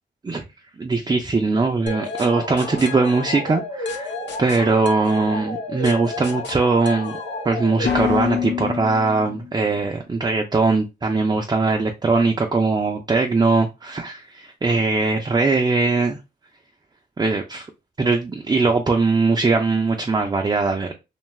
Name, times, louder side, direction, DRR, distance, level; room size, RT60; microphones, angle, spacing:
voice 1, 0.8-7.1 7.4-16.2 17.2-17.7 18.0-20.9, right 3 dB, 25° right, 0.4 m, -21 dB
sound 1, 1.9-9.6, left 5 dB, 80° left, 0.7 m, -29 dB
2.5 x 2.3 x 3.1 m
cardioid pair, 65°, 18 cm